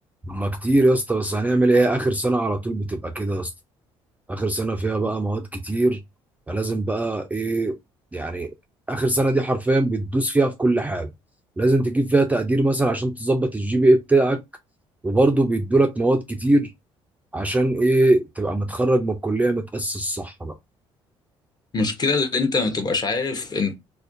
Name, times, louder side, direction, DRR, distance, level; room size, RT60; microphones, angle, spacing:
voice 1, 0.3-3.5 4.3-6.0 6.5-7.8 8.1-8.5 8.9-11.1 11.6-14.4 15.0-16.7 17.3-20.5, right 2 dB, 10° right, 0.3 m, -21 dB
voice 2, 21.7-23.7, left 4 dB, 30° left, 0.6 m, -23 dB
2.4 x 2.1 x 2.5 m
hypercardioid pair, 55°, 14 cm